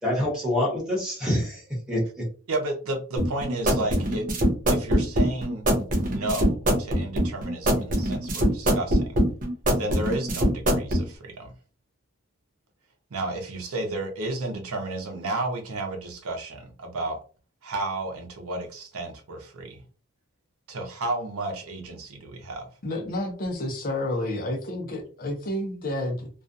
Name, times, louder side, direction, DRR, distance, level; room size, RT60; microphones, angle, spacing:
voice 1, 0.0-2.3, left 1 dB, 5° right, -5 dB, 1.1 m, -26 dB
voice 2, 2.5-4.3 4.7-5.7 6.1-9.2 9.8-11.5 13.1-17.2 17.6-19.8 20.7-22.7, right 2 dB, 85° right, 4 dB, 0.7 m, -32 dB
sound 1, 3.2-11.0, right 1 dB, 35° right, 0.5 m, -23 dB
voice 3, 22.8-26.3, left 1 dB, 40° left, 3 dB, 0.5 m, -30 dB
2.4 x 2.3 x 2.5 m, 0.37 s
head